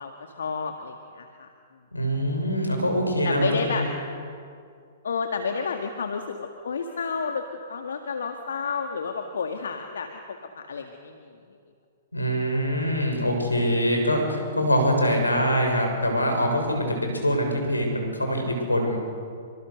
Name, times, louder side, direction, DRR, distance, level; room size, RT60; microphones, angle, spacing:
voice 1, 0.0-1.5 3.2-3.9 5.0-10.1 10.6-11.3, left 5 dB, 70° left, 4 dB, 2.0 m, -31 dB
voice 2, 1.9-3.9 12.1-19.0, equal, 90° left, 3 dB, 7.1 m, -24 dB
28.5 x 25.5 x 6.7 m, 2.3 s
figure-of-eight pair, 110°, 0 cm